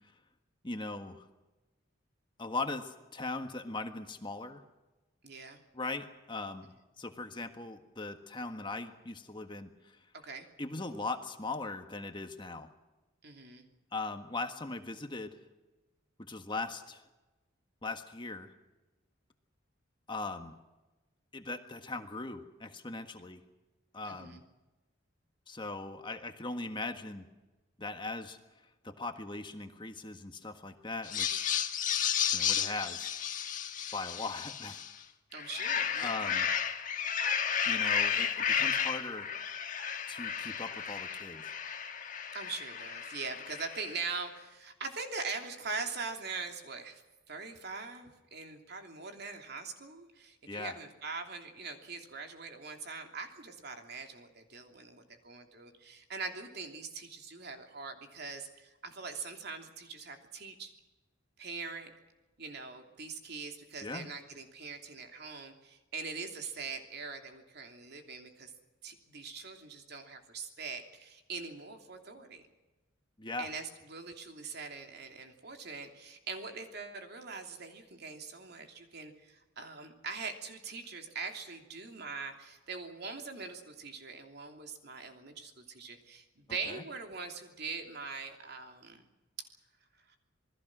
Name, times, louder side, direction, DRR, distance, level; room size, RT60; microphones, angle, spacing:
voice 1, 0.6-1.3 2.4-4.6 5.7-10.0 10.6-12.7 13.9-15.4 16.3-17.0 17.8-18.5 20.1-20.6 21.3-23.4 23.9-24.4 25.5-27.3 27.8-28.4 28.8-31.5 32.3-33.1 33.9-34.8 36.0-36.5 37.6-39.3 40.1-41.5 50.5-50.8 63.8-64.1 73.2-73.5 86.6-86.8, left 3 dB, 25° left, 6 dB, 1.5 m, -39 dB
voice 2, 5.2-5.6 10.1-10.5 13.2-13.6 24.0-24.4 35.3-36.4 42.3-47.0 47.3-60.7 61.4-61.9 62.4-68.5 68.8-72.4 73.4-89.0 90.1-90.2, right 4 dB, 55° right, 4 dB, 3.0 m, -42 dB
sound 1, 31.0-34.9 35.3-44.0, left 8 dB, 40° left, 1.5 m, -33 dB
27.5 x 20.5 x 6.2 m, 1.1 s
head